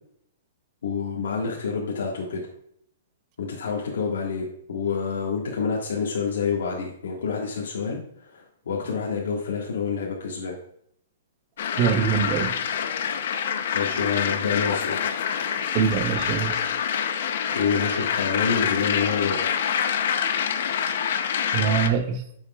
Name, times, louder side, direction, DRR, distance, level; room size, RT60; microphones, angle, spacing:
voice 1, 0.8-2.4 3.4-10.6 13.7-15.0 17.5-19.6, left 5 dB, 90° left, -3 dB, 1.6 m, -28 dB
sound 1, 11.6-21.9, left 8 dB, 50° left, 0.6 m, -26 dB
voice 2, 11.8-12.5 15.7-16.6 21.5-22.2, right 7 dB, 25° right, 7 dB, 0.7 m, -23 dB
9.3 x 6.5 x 2.3 m, 0.71 s
hypercardioid pair, 175°, 0 cm